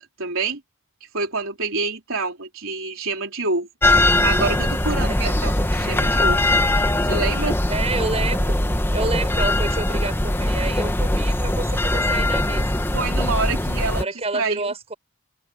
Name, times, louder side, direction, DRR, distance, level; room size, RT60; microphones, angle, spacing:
voice 1, 0.2-0.6 1.1-3.7 4.2-6.4 7.0-7.6 12.9-14.1 14.3-14.7, right 3 dB, 70° right, 3.7 m, -27 dB
sound 1, 3.8-14.0, left 1 dB, 10° left, 1.3 m, -21 dB
voice 2, 5.1-5.5 7.7-8.6 8.9-12.8 13.9-14.9, right 3 dB, 30° right, 6.0 m, -29 dB
head